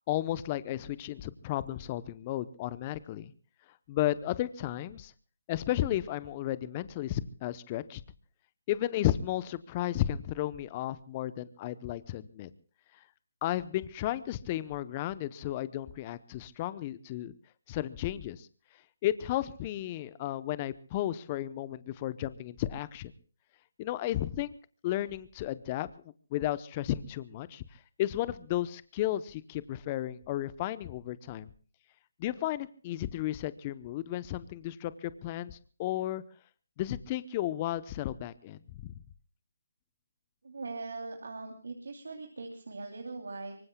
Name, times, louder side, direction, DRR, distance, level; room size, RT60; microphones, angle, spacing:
voice 1, 0.1-3.3 3.9-5.1 5.5-8.0 8.7-12.5 13.4-17.3 17.7-18.5 19.0-23.1 23.8-24.5 24.8-25.9 26.3-27.6 28.0-31.5 32.2-36.2 36.8-38.9, left 13 dB, 30° left, 16 dB, 0.8 m, -33 dB
voice 2, 40.4-43.5, right 3 dB, 70° right, 3 dB, 3.0 m, -41 dB
25.0 x 24.0 x 2.3 m, 0.41 s
figure-of-eight pair, 150°, 0 cm